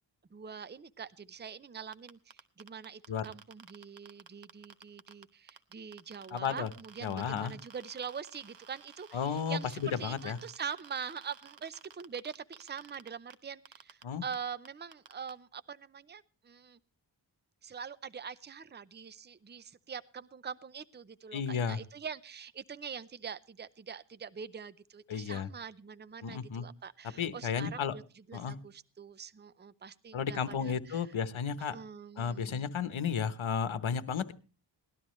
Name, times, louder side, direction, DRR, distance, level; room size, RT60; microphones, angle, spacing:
voice 1, 0.3-16.8 17.6-31.1 31.6-32.7, right 6 dB, 20° right, 16 dB, 0.6 m, -44 dB
sound 1, 1.9-5.2 5.5-13.3 13.6-14.0 14.3-14.4 14.6-15.3, right 7 dB, 60° right, 1.1 m, -53 dB
voice 2, 6.3-6.7 7.0-7.5 9.1-10.4 14.0-14.2 21.3-21.8 25.1-25.5 26.2-26.6 27.2-27.9 28.3-28.5 30.1-31.8 32.2-34.3, left 7 dB, 75° left, 12 dB, 1.1 m, -33 dB
18.5 x 12.5 x 3.1 m, 0.34 s
wide cardioid pair, 80°, 48 cm